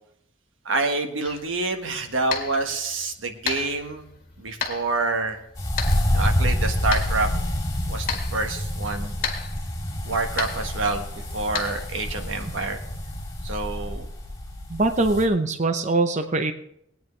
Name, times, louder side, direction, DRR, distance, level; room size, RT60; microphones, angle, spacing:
voice 1, 0.6-4.1 4.4-5.4 6.1-7.3 7.9-9.1 10.0-11.0 11.3-12.8 13.4-14.1, right 3 dB, 85° right, 5 dB, 1.4 m, -27 dB
sound 1, 1.2-11.9, left 6 dB, 50° left, 1.6 m, -35 dB
sound 2, 5.6-15.2, left 1 dB, 20° left, 2.7 m, -27 dB
voice 2, 14.7-16.5, right 2 dB, 40° right, 7 dB, 0.7 m, -22 dB
20.0 x 9.1 x 3.2 m, 0.73 s
head